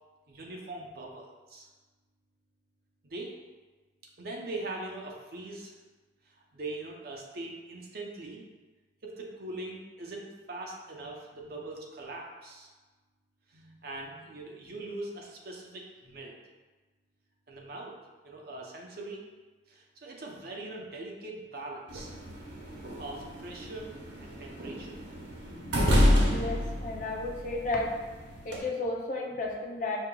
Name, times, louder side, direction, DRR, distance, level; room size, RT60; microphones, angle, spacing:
voice 1, 0.3-1.7 3.0-3.3 4.2-5.7 6.3-8.4 9.0-12.7 13.5-16.3 17.5-17.9 18.2-19.2 19.7-22.1 23.0-23.9 24.2-25.0, right 2 dB, 55° right, -1 dB, 0.6 m, -41 dB
sound 1, 21.9-28.6, equal, 85° right, 0.8 m, -29 dB
voice 2, 26.3-27.9 28.4-30.0, left 2 dB, 45° left, -1 dB, 0.5 m, -33 dB
5.4 x 2.8 x 2.2 m, 1.3 s
head